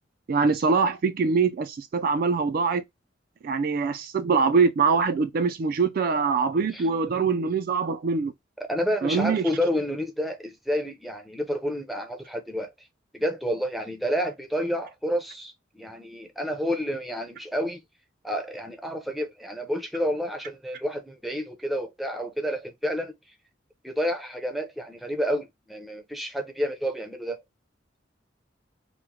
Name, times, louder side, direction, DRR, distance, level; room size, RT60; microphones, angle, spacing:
voice 1, 0.3-2.8 3.4-8.3 9.0-9.5, right 5 dB, 50° right, 0.3 m, -23 dB
voice 2, 8.7-12.7 13.1-17.8 18.2-23.1 23.8-27.4, equal, ahead, 0.5 m, -29 dB
3.0 x 2.1 x 3.5 m
head